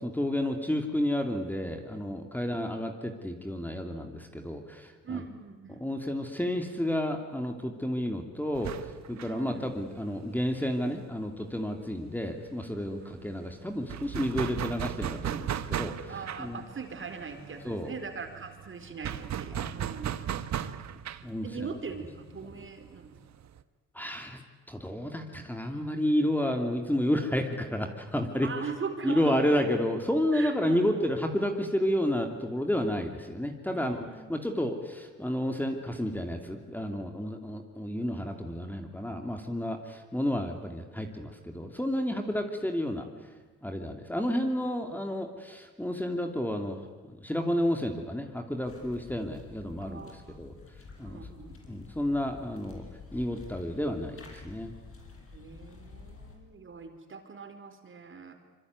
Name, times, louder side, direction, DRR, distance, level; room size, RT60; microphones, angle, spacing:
voice 1, 0.0-5.2 5.7-16.6 17.6-17.9 19.5-19.7 21.2-21.5 23.9-24.4 24.7-28.5 29.0-43.1 43.6-50.5 51.0-51.3 51.7-52.8 53.1-54.7, left 1 dB, 5° left, 4 dB, 2.8 m, -31 dB
voice 2, 5.0-5.9 9.3-9.7 13.0-13.3 16.1-20.3 21.4-23.1 28.4-29.6 30.3-30.8 33.7-34.4 49.8-50.4 51.0-51.6 55.3-58.3, right 5 dB, 40° right, 6 dB, 4.6 m, -41 dB
sound 1, 8.5-12.0 12.2-12.3 12.6-23.6, right 10 dB, 65° right, 1.4 m, -37 dB
sound 2, 48.6-56.4, left 4 dB, 50° left, 6.5 m, -49 dB
25.5 x 24.0 x 9.6 m, 1.3 s
cardioid pair, 90°, 30 cm